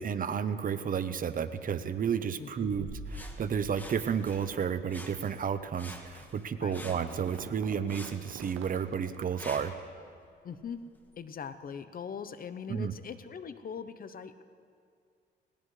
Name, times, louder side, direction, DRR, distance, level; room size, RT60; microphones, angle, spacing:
voice 1, 0.0-2.9 3.1-9.8 12.7-12.9, right 7 dB, 45° right, 11 dB, 0.8 m, -32 dB
voice 2, 2.4-2.7 6.6-6.8 10.4-10.8 11.2-14.4, left 6 dB, 45° left, 12 dB, 0.8 m, -41 dB
sound 1, 2.7-8.2, right 1 dB, 10° right, 3.5 m, -48 dB
Sawing, 3.1-4.6 4.9-5.5 5.8-7.5 7.9-9.9 10.5-10.6, left 1 dB, 10° left, 1.6 m, -49 dB
sound 2, 6.6-9.8, right 10 dB, 85° right, 0.6 m, -48 dB
19.0 x 19.0 x 3.3 m, 2.2 s
cardioid pair, 90°, 20 cm